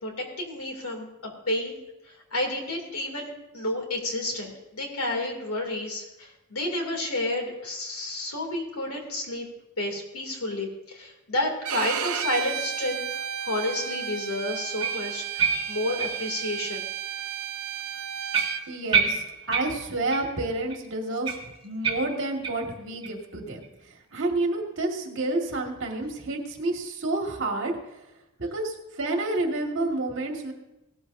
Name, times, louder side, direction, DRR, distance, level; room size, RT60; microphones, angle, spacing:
voice 1, 0.0-1.8 2.3-9.4 9.8-13.0 13.4-16.8, left 1 dB, 90° left, 2 dB, 2.7 m, -30 dB
Bowed string instrument, 11.6-18.6, right 10 dB, 90° right, 0.7 m, -33 dB
sound 1, 14.8-16.8 17.2-17.3 17.8-17.9 18.3-20.4 20.7-20.8 21.2-22.7 23.0-23.1 23.6-23.7 24.2-24.3, right 5 dB, 25° right, 1.6 m, -29 dB
voice 2, 18.7-21.3 21.6-23.6 24.1-27.7 28.4-30.5, right 2 dB, 60° right, 2 dB, 1.8 m, -29 dB
18.0 x 12.5 x 2.7 m, 0.96 s
head